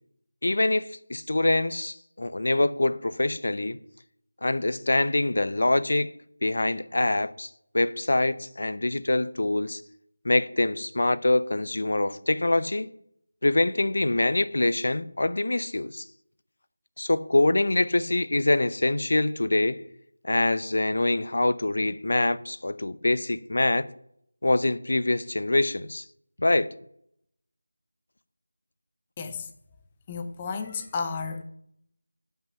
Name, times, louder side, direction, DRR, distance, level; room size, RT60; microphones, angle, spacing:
voice 1, 0.4-3.8 4.4-6.1 6.4-9.8 10.2-12.9 13.4-16.1 17.0-19.8 20.2-23.9 24.4-26.0 26.4-26.7, left 2 dB, 65° left, 0.7 m, -24 dB
voice 2, 29.2-29.5 30.1-31.4, left 5 dB, 15° left, 0.6 m, -32 dB
13.0 x 5.8 x 5.8 m
figure-of-eight pair, 175°, 0 cm